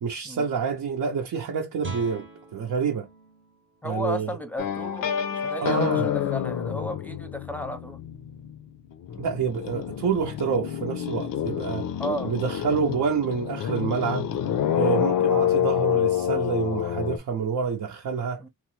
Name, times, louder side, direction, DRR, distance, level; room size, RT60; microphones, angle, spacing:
voice 1, 0.0-3.1 3.8-4.4 5.6-6.1 9.2-11.8 12.2-14.3 14.7-18.4, right 6 dB, 80° right, 0.6 m, -28 dB
Guitar, 1.8-7.4, right 3 dB, 35° right, 0.7 m, -45 dB
voice 2, 3.8-5.0 5.3-8.0 12.0-12.3 14.9-15.1 18.4-18.5, equal, 5° left, 0.5 m, -34 dB
sound 1, 4.6-8.6 8.9-17.2, left 9 dB, 90° left, 0.5 m, -27 dB
3.0 x 2.0 x 2.9 m
wide cardioid pair, 125°, 33 cm